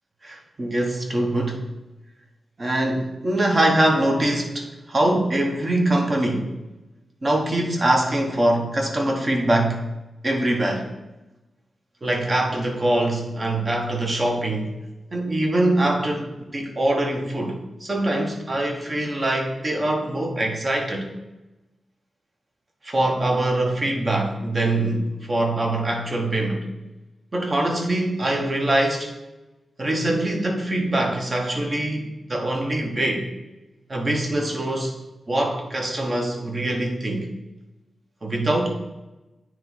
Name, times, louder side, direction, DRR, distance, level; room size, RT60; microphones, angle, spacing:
voice 1, 0.2-1.6 2.6-6.6 7.2-9.8 10.2-10.9 12.0-14.8 15.1-21.1 22.8-26.7 27.3-29.1 29.8-33.3 33.9-35.0 35.3-37.3 38.2-38.7, right 1 dB, 35° right, 2 dB, 1.1 m, -23 dB
9.0 x 3.0 x 3.8 m, 1.0 s
wide cardioid pair, 95°, 0 cm